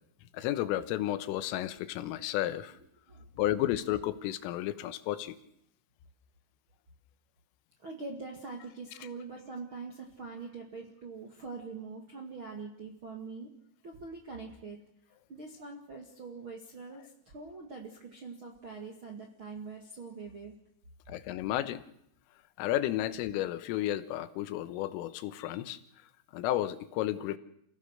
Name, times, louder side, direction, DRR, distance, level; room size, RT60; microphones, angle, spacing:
voice 1, 0.3-2.7 3.4-5.4 21.1-21.8 22.6-25.8 26.3-27.4, left 13 dB, 85° left, 13 dB, 3.6 m, -32 dB
voice 2, 7.8-13.5 13.8-14.8 15.3-20.5, right 4 dB, 50° right, 0 dB, 1.5 m, -43 dB
28.5 x 16.5 x 6.6 m, 0.74 s
omnidirectional pair, 5.8 m